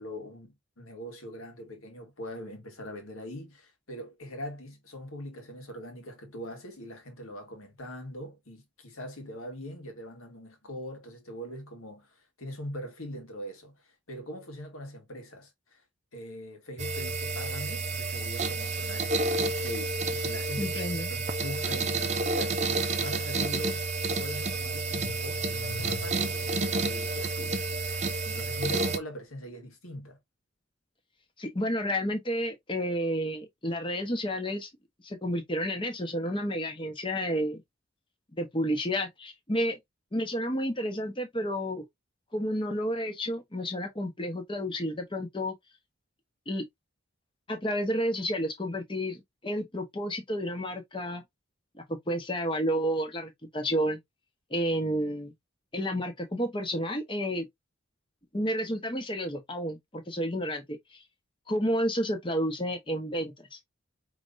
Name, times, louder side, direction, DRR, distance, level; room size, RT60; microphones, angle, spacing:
voice 1, 0.0-15.8 16.1-20.8 21.1-22.6 23.0-27.7 28.2-30.2, equal, 90° left, 1.6 m, -42 dB
sound 1, 16.8-29.0, right 3 dB, 35° right, 0.5 m, -30 dB
voice 2, 20.6-21.1 31.4-34.7 35.0-37.6 38.3-39.8 40.1-41.9 42.3-45.5 46.5-46.6 47.5-51.2 51.7-54.0 54.5-55.3 55.7-57.5 58.3-61.0 61.5-63.6, equal, 25° left, 0.9 m, -31 dB
Car / Engine starting, 23.0-23.1 23.4-28.7, left 5 dB, 55° left, 1.1 m, -48 dB
5.0 x 3.2 x 2.5 m
head